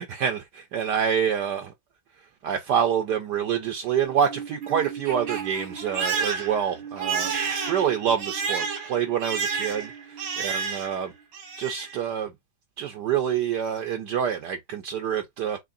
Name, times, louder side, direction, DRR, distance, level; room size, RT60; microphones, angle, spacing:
voice 1, 0.0-1.7 2.4-7.4 7.7-11.1 11.6-12.3 12.8-15.6, right 8 dB, 70° right, 1.2 m, -27 dB
Crying sobbing, 4.0-11.0 11.3-12.0, right 6 dB, 90° right, 2.4 m, -31 dB
6.3 x 2.9 x 2.6 m
omnidirectional pair, 2.2 m